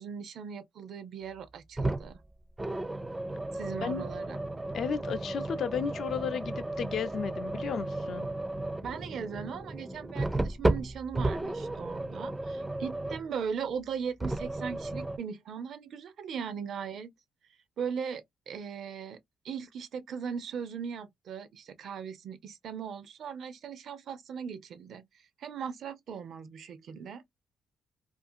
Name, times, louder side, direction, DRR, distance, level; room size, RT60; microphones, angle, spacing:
voice 1, 0.0-2.2 3.5-4.4 8.8-17.1 17.8-19.2 19.4-25.1 25.4-27.2, right 7 dB, 65° right, 0.5 m, -38 dB
sound 1, 1.8-2.2 2.6-13.3 14.2-15.2, right 2 dB, 15° right, 0.4 m, -33 dB
voice 2, 4.7-8.3, left 7 dB, 60° left, 0.5 m, -34 dB
2.6 x 2.4 x 2.6 m
cardioid pair, 90°, 0 cm